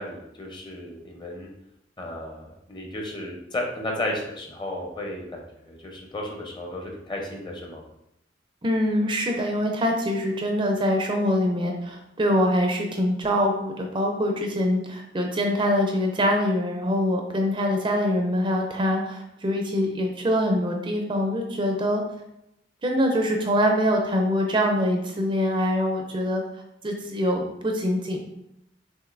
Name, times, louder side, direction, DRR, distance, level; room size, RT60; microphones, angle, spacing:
voice 1, 0.0-1.5 2.0-7.8, left 1 dB, 25° left, 0 dB, 0.7 m, -34 dB
voice 2, 8.6-22.0 22.8-26.4 26.8-28.2, equal, 25° right, 2 dB, 0.5 m, -24 dB
6.4 x 2.6 x 2.5 m, 0.82 s
head